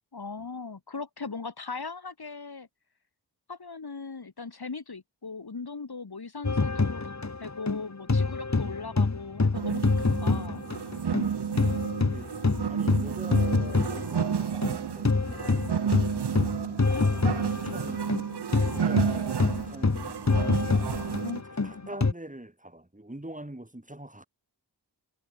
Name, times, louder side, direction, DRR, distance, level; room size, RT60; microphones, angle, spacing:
voice 1, 0.0-2.7 3.5-7.1 7.4-9.9 10.2-10.6 16.9-17.1 21.2-21.4 21.7-21.9, left 4 dB, 65° left, 3.3 m, -39 dB
sound 1, 6.4-11.3 11.6-22.1, left 3 dB, 40° left, 2.2 m, -26 dB
sound 2, 9.5-21.4, right 7 dB, 70° right, 1.0 m, -31 dB
voice 2, 11.1-11.6 11.9-12.3 12.7-15.6 17.5-18.1 18.5-20.6 21.4-24.3, right 1 dB, 20° right, 6.7 m, -44 dB
wide cardioid pair, 55°, 41 cm